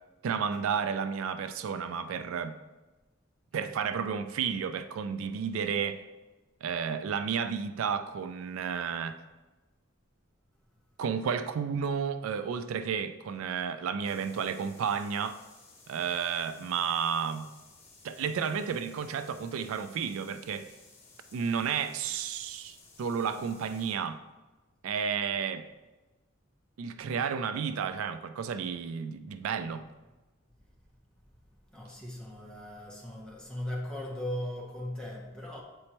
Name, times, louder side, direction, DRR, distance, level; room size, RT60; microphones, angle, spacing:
voice 1, 0.2-2.6 3.5-6.0 6.6-9.2 11.0-15.4 15.9-17.5 18.0-20.7 21.3-24.2 24.8-25.6 26.8-29.8, right 7 dB, 75° right, 0.3 m, -32 dB
sound 1, 14.0-23.9, left 3 dB, 30° left, 1.3 m, -57 dB
voice 2, 31.7-35.6, left 1 dB, 5° left, 0.8 m, -38 dB
7.7 x 4.2 x 3.0 m
head